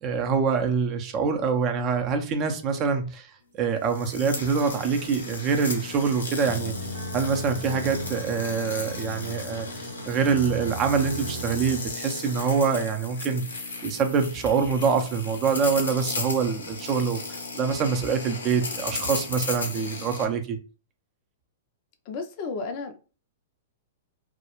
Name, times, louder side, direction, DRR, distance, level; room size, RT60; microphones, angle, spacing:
voice 1, 0.0-3.3 3.6-6.7 7.1-13.4 13.8-20.6, right 5 dB, 35° right, 0.5 m, -25 dB
sound 1, 3.8-20.2, left 3 dB, 90° left, 0.7 m, -35 dB
sound 2, 6.4-11.8, right 1 dB, 85° right, 0.6 m, -37 dB
voice 2, 22.1-23.0, left 4 dB, 45° left, 0.4 m, -33 dB
2.3 x 2.0 x 2.9 m
hypercardioid pair, 115°, 0 cm